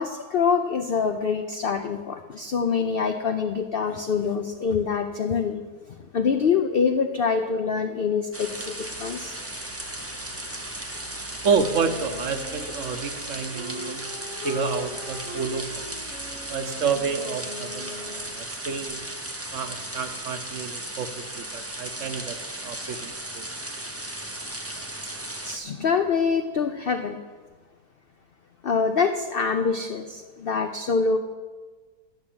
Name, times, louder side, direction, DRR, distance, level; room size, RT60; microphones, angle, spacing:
voice 1, 0.0-5.6 6.1-9.3 25.4-27.2 28.6-31.2, left 5 dB, 85° left, 7 dB, 0.5 m, -25 dB
sound 1, 8.3-25.6, right 1 dB, 15° right, 0.5 m, -36 dB
Wind instrument woodwind instrument, 11.3-18.5, left 4 dB, 20° left, 1.2 m, -40 dB
voice 2, 11.4-14.1 14.4-15.8 16.5-19.0 19.5-22.4 22.6-23.5, right 6 dB, 60° right, 8 dB, 0.9 m, -29 dB
11.5 x 6.1 x 8.7 m, 1.4 s
omnidirectional pair, 1.7 m